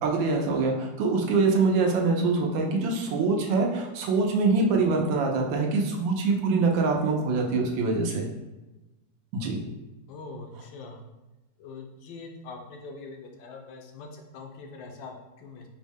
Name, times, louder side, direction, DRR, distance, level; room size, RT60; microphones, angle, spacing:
voice 1, 0.0-8.3 9.3-9.6, right 3 dB, 90° right, 1 dB, 1.4 m, -24 dB
voice 2, 10.1-11.0 11.6-15.7, left 3 dB, 80° left, 3 dB, 1.3 m, -43 dB
5.2 x 2.1 x 3.4 m, 1.1 s
omnidirectional pair, 2.0 m